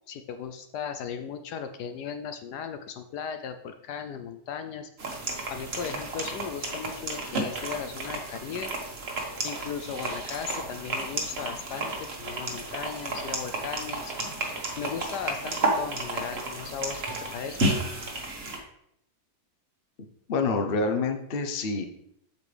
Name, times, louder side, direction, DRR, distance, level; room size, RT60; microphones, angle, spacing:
voice 1, 0.1-4.9 5.5-8.7 9.4-14.1 14.8-17.0 17.3-17.6, left 7 dB, 70° left, 8 dB, 1.0 m, -36 dB
sound 1, 5.0-18.6, right 2 dB, 40° right, 1.3 m, -32 dB
voice 2, 20.3-21.9, left 3 dB, 55° left, 5 dB, 0.6 m, -27 dB
8.0 x 6.7 x 3.3 m, 0.75 s
omnidirectional pair, 2.1 m